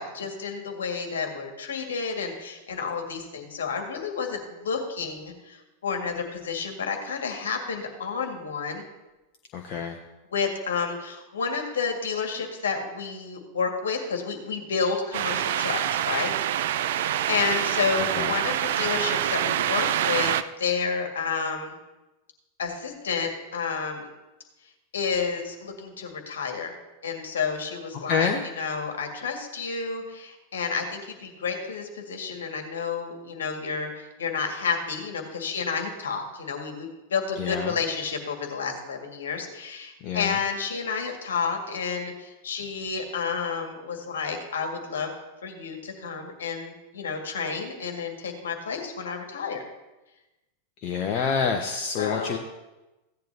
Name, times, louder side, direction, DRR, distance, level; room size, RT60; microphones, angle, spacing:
voice 1, 0.0-8.8 10.3-16.3 16.9-21.8 22.6-24.1 24.9-26.8 27.0-28.3 28.6-45.1 45.4-49.6 52.0-52.4, left 5 dB, 65° left, 3 dB, 2.0 m, -30 dB
voice 2, 9.5-10.0 18.1-18.3 28.1-28.5 37.4-37.7 40.0-40.4 50.8-52.4, left 6 dB, 40° left, 3 dB, 0.9 m, -27 dB
sound 1, 15.1-20.4, right 11 dB, 55° right, 0.4 m, -26 dB
16.0 x 10.5 x 2.9 m, 1.0 s
figure-of-eight pair, 90°, 0 cm